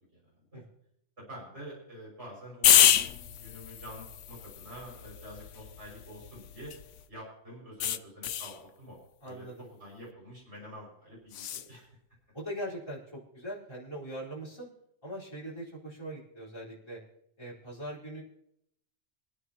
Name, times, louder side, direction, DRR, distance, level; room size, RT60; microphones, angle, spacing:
voice 1, 0.1-0.6 1.2-2.9 3.2-6.7 7.1-9.0 9.2-9.5 9.8-11.9, equal, 70° right, -4 dB, 6.7 m, -47 dB
sound 1, 2.6-7.0 7.8-8.6 11.3-11.7, left 10 dB, 85° left, 1.0 m, -28 dB
voice 2, 9.2-9.7 11.5-11.7 12.3-14.7 15.0-17.0 17.4-18.2, equal, 20° left, -6 dB, 4.7 m, -41 dB
28.0 x 9.5 x 3.0 m, 0.74 s
omnidirectional pair, 1.2 m